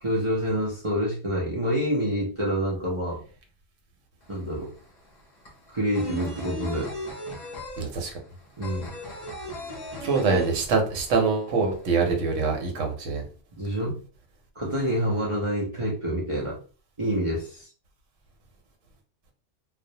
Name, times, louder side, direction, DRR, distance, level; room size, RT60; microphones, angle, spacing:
voice 1, 0.0-3.2 4.3-4.7 5.7-6.9 8.6-8.9 13.6-13.9 14.6-16.6 17.0-17.7, equal, 40° right, -5 dB, 0.4 m, -27 dB
sound 1, 4.2-4.3 4.6-11.2 11.4-11.5 11.8-12.6, left 1 dB, 45° left, 0.7 m, -37 dB
voice 2, 7.8-8.1 10.0-13.2, right 4 dB, 80° right, 2 dB, 1.0 m, -24 dB
2.3 x 2.0 x 2.7 m, 0.39 s
omnidirectional pair, 1.3 m